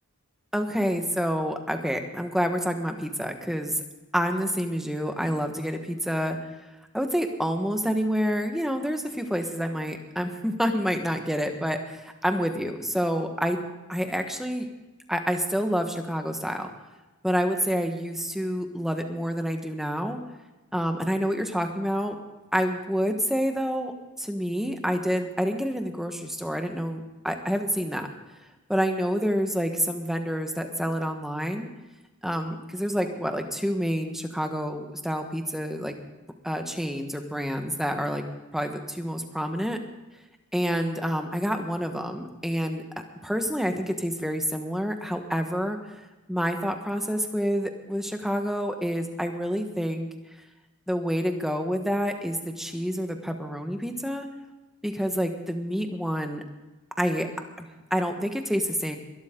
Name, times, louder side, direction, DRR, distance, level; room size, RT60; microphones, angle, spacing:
voice 1, 0.5-3.8 4.1-6.4 6.9-14.7 15.1-16.7 17.2-20.2 20.7-22.1 22.5-28.1 28.7-31.7 32.2-36.0 36.4-38.2 38.5-39.8 40.5-42.8 43.2-46.0 46.3-50.1 50.9-54.3 54.8-56.4 57.0-57.3 57.6-59.0, equal, ahead, 5 dB, 1.3 m, -28 dB
22.0 x 12.5 x 3.8 m, 1.1 s
head